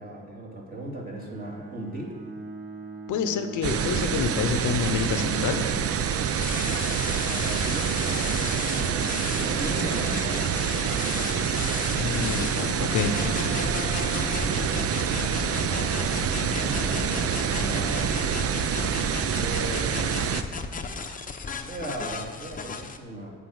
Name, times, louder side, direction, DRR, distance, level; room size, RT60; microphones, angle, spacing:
voice 1, 0.0-2.1 7.3-10.4 10.7-11.3 14.2-15.0 15.2-18.2 19.4-20.7 21.6-23.3, right 1 dB, 30° right, -3 dB, 2.8 m, -38 dB
Bowed string instrument, 1.1-6.0, right 3 dB, 80° right, 2.8 m, -39 dB
voice 2, 3.1-5.6 11.9-13.2, left 7 dB, 75° left, 9 dB, 0.8 m, -28 dB
sound 1, 3.6-20.4, right 7 dB, 50° right, 0.6 m, -27 dB
sound 2, 6.4-23.0, left 4 dB, 25° left, 0.8 m, -34 dB
9.1 x 5.5 x 7.9 m, 1.5 s
cardioid pair, 90°, 30 cm